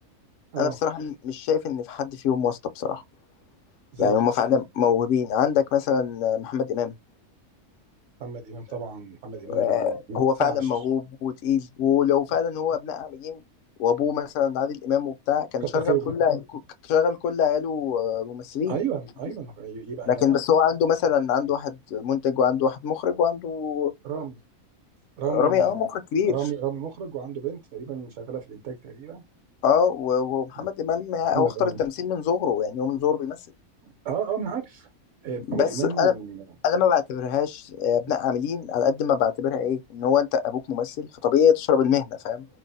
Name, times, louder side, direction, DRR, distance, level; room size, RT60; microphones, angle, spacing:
voice 1, 0.6-3.0 4.0-6.9 9.5-13.4 13.8-16.6 16.9-18.8 20.1-23.9 25.2-26.3 29.6-33.4 35.5-36.1 36.6-42.4, left 8 dB, 70° left, 0.8 m, -24 dB
voice 2, 8.2-10.7 15.6-16.1 18.7-20.4 24.0-24.4 25.2-25.9 26.2-29.2 31.3-31.8 33.8-34.9 35.2-36.4, right 8 dB, 65° right, 1.0 m, -32 dB
2.6 x 2.1 x 3.9 m
omnidirectional pair, 1.5 m